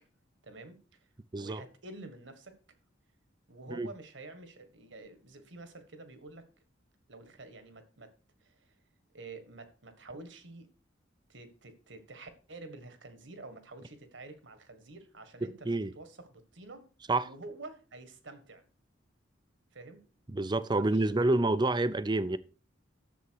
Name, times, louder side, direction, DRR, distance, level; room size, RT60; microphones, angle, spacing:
voice 1, 0.4-1.1 1.3-2.5 3.5-6.5 7.1-8.1 8.4-8.7 9.1-10.7 11.3-16.9 17.2-18.6 19.7-20.0 20.7-21.2, right 2 dB, 70° right, 1.7 m, -48 dB
voice 2, 15.4-15.9 17.1-17.3 20.3-22.4, right 2 dB, 25° right, 0.5 m, -28 dB
11.5 x 7.2 x 4.7 m
head